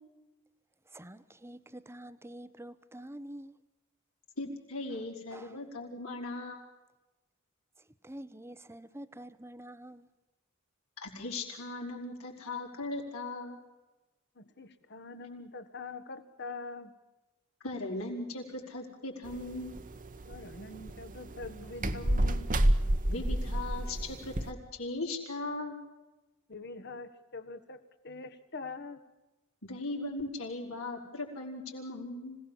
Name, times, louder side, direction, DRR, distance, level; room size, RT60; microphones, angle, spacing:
voice 1, 0.9-3.6 5.3-5.6 8.0-10.1, right 1 dB, 10° right, 0.9 m, -47 dB
voice 2, 4.4-6.6 11.0-13.6 17.6-19.8 23.1-25.8 29.6-32.4, left 2 dB, 85° left, 5.0 m, -38 dB
voice 3, 14.3-16.9 20.3-22.5 26.5-29.0, left 3 dB, 55° left, 1.7 m, -44 dB
sound 1, 19.3-24.5, right 1 dB, 40° right, 1.2 m, -30 dB
26.0 x 17.5 x 7.3 m
head